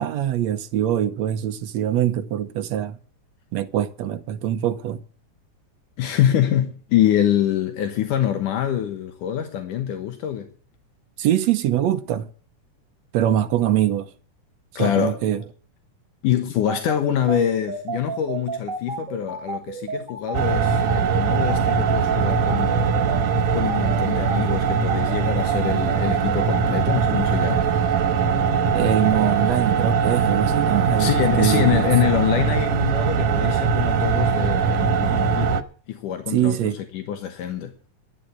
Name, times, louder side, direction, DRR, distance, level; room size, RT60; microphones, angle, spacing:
voice 1, 0.0-3.0 3.5-5.0 11.2-12.3 13.1-14.1 14.7-15.4 28.7-31.9 36.3-36.8, right 11 dB, 70° right, 1.9 m, -23 dB
voice 2, 6.0-10.5 14.8-15.2 16.2-23.0 23.5-27.7 31.0-35.6 35.9-36.6 36.9-37.7, left 10 dB, 80° left, 2.8 m, -25 dB
sound 1, 16.7-26.6, right 5 dB, 35° right, 4.3 m, -31 dB
sound 2, 20.3-35.6, right 6 dB, 85° right, 2.6 m, -21 dB
12.5 x 9.3 x 8.4 m
omnidirectional pair, 3.6 m